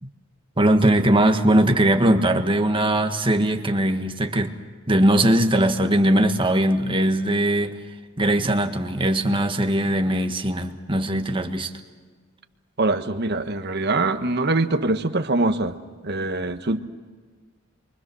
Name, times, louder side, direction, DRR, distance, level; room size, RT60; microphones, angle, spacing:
voice 1, 0.6-4.5 4.9-7.7 8.2-11.7, right 1 dB, 25° right, 5 dB, 1.6 m, -20 dB
voice 2, 12.8-15.7 16.0-16.8, right 2 dB, 55° right, 8 dB, 1.4 m, -23 dB
28.5 x 24.0 x 6.3 m, 1.5 s
head